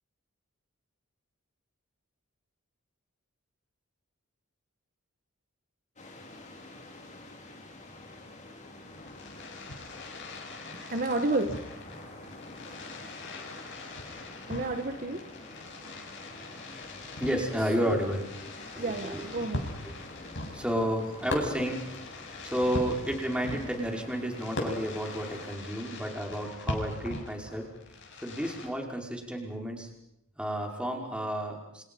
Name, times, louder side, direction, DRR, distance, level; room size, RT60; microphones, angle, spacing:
sound 1, 6.0-25.5, left 2 dB, 35° left, 5.4 m, -48 dB
Fireworks, 8.8-28.7, left 1 dB, 60° left, 7.7 m, -40 dB
voice 1, 10.7-11.5 14.5-15.2 17.8-17.9 18.8-19.6, right 2 dB, 45° right, 5 dB, 1.9 m, -30 dB
voice 2, 17.2-19.5 19.8-19.9 20.5-21.8 22.4-27.7 28.2-29.9 30.4-31.8, equal, 5° right, 1 dB, 5.3 m, -32 dB
29.5 x 28.5 x 5.6 m, 0.83 s
head